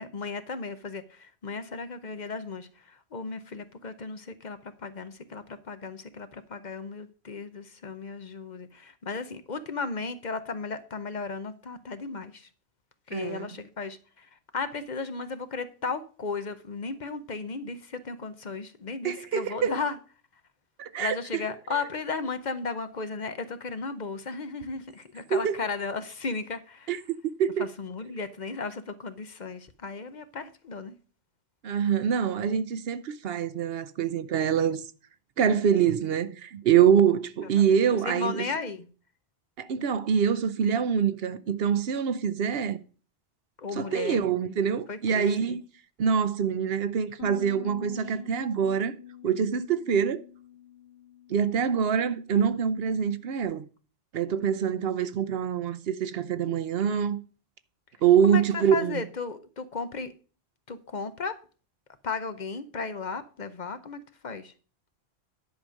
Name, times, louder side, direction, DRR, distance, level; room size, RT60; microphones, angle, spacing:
voice 1, 0.0-12.5 13.1-20.0 21.0-27.0 27.6-31.0 37.6-38.9 43.6-44.3 44.9-45.6 58.2-60.1 60.7-61.4 62.0-64.5, left 4 dB, 50° left, 0.8 m, -35 dB
voice 2, 13.1-13.5 19.0-19.7 20.8-21.4 25.3-25.6 26.9-27.0 27.4-27.7 31.6-34.9 35.4-38.5 39.6-42.8 43.8-45.6 46.0-49.0 49.2-50.2 51.3-53.7 54.1-57.2 58.0-59.0, right 8 dB, 70° right, 0.9 m, -25 dB
Bass guitar, 47.2-53.4, left 9 dB, 80° left, 1.1 m, -46 dB
10.5 x 5.0 x 6.3 m
omnidirectional pair, 1.1 m